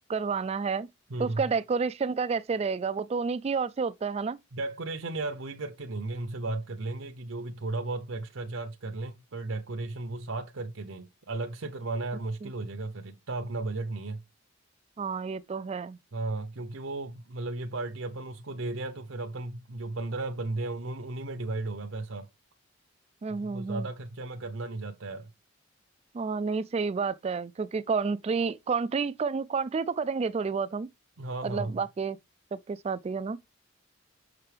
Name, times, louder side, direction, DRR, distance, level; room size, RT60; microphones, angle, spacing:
voice 1, 0.1-0.9 1.2-4.4 12.4-12.5 15.0-16.0 23.2-23.9 26.1-30.9 31.4-32.2 32.5-33.4, right 5 dB, 30° right, 0.3 m, -30 dB
voice 2, 1.1-1.4 4.5-14.2 16.1-22.3 23.3-25.3 31.2-31.7, right 2 dB, 75° right, 0.8 m, -35 dB
6.6 x 6.0 x 3.3 m
head